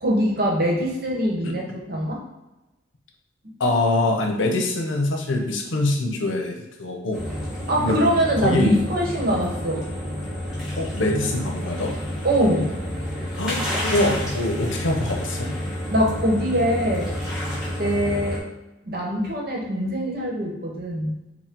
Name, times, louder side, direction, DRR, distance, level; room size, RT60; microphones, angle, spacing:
voice 1, 0.0-2.2 7.7-9.8 12.2-12.8 15.9-17.1 17.8-18.4 18.8-21.1, equal, 50° right, -2 dB, 1.0 m, -23 dB
voice 2, 3.6-7.2 7.8-8.0 8.4-8.7 10.8-11.9 13.4-15.5, left 2 dB, 85° left, 2 dB, 0.7 m, -24 dB
sound 1, 7.1-18.4, equal, 5° right, 1.0 m, -29 dB
4.6 x 2.2 x 3.7 m, 1.0 s
head